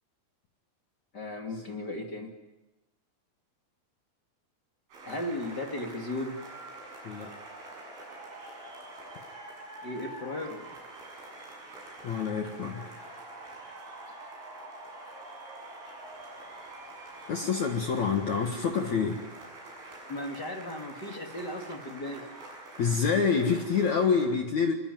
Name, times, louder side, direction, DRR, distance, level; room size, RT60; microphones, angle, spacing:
voice 1, 1.1-2.3 5.0-6.3 9.8-10.7 14.1-14.2 20.1-22.2, left 1 dB, 35° left, 2 dB, 1.6 m, -36 dB
sound 1, 4.9-24.2, right 2 dB, 65° right, 10.0 m, -46 dB
voice 2, 12.0-12.8 17.3-19.2 22.8-24.7, left 6 dB, 70° left, 3 dB, 1.7 m, -27 dB
26.5 x 22.0 x 9.3 m, 1.0 s
omnidirectional pair, 5.9 m